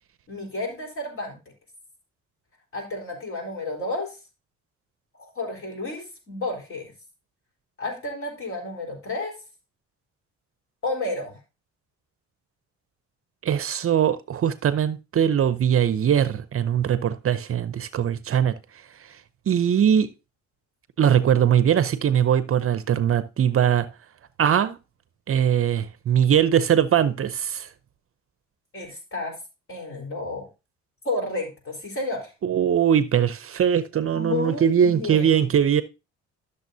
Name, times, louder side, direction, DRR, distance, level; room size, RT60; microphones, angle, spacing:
voice 1, 0.3-1.4 2.7-4.2 5.2-6.9 7.8-9.4 10.8-11.4 28.7-29.4 29.7-30.5 31.0-32.3 34.1-35.3, left 2 dB, 45° left, 4.1 m, -31 dB
voice 2, 13.4-18.5 19.5-20.1 21.0-23.9 24.4-24.8 25.3-27.7 32.4-35.8, right 9 dB, 45° right, 0.6 m, -21 dB
12.0 x 6.7 x 2.7 m
cardioid pair, 90°, 30 cm